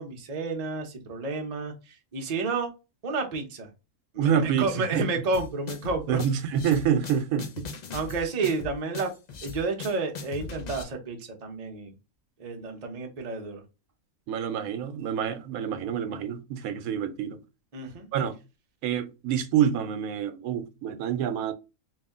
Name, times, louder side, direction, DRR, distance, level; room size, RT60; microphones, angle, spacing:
voice 1, 0.0-2.7 3.0-3.7 4.1-6.2 7.9-9.1 9.4-11.9 12.4-13.6 17.7-18.1, right 3 dB, 35° right, 0.7 m, -31 dB
voice 2, 4.2-5.1 6.1-7.7 14.3-17.4 18.1-18.3 18.8-21.5, right 8 dB, 80° right, 1.0 m, -27 dB
sound 1, 5.3-10.8, left 4 dB, 60° left, 0.4 m, -39 dB
3.1 x 2.7 x 3.5 m
omnidirectional pair, 1.5 m